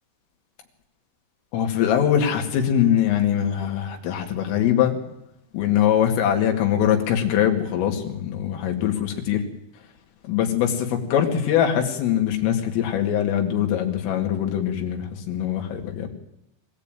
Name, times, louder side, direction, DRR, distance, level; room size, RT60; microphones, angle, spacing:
voice 1, 1.5-5.0 5.5-9.4 10.3-16.1, left 9 dB, 90° left, 3 dB, 5.0 m, -22 dB
24.0 x 16.0 x 9.2 m, 0.86 s
omnidirectional pair, 5.7 m